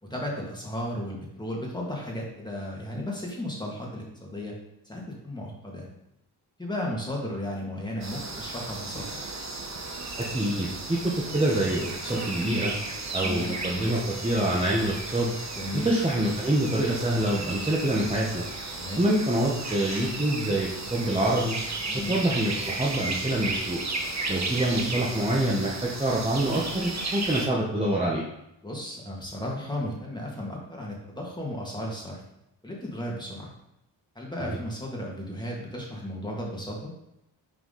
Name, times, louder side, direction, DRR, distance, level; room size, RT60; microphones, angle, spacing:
voice 1, 0.0-4.5 4.8-5.9 6.6-9.2 13.2-13.4 15.5-15.9 18.7-19.0 21.9-22.1 24.7-24.9 28.6-32.2 32.6-33.5 34.1-36.9, left 1 dB, 10° left, -3 dB, 2.4 m, -34 dB
sound 1, 8.0-27.5, right 3 dB, 35° right, 1.2 m, -34 dB
voice 2, 10.2-12.7 13.1-15.3 15.7-18.4 19.0-21.6 21.9-23.8 24.3-28.2, right 1 dB, 10° right, -5 dB, 1.2 m, -26 dB
5.8 x 4.7 x 4.1 m, 0.84 s
supercardioid pair, 45°, 47 cm